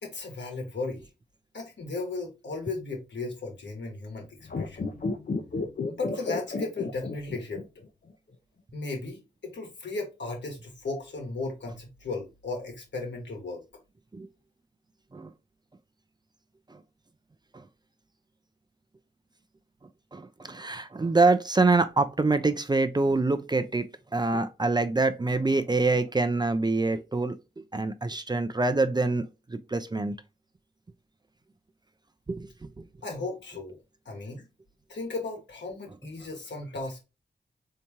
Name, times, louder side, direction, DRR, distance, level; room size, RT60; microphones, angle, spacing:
voice 1, 0.0-1.1 1.5-4.9 5.9-7.6 8.7-13.6 33.0-33.8 34.0-34.5 34.9-37.0, left 3 dB, 75° left, 1.2 m, -36 dB
sound 1, 4.4-8.1, left 3 dB, 50° left, 0.5 m, -32 dB
voice 2, 20.1-23.9 24.1-27.4 27.7-29.2 29.5-30.2 32.3-32.5 32.8-32.9, right 3 dB, 25° right, 0.4 m, -25 dB
3.4 x 2.8 x 2.8 m
cardioid pair, 40°, 19 cm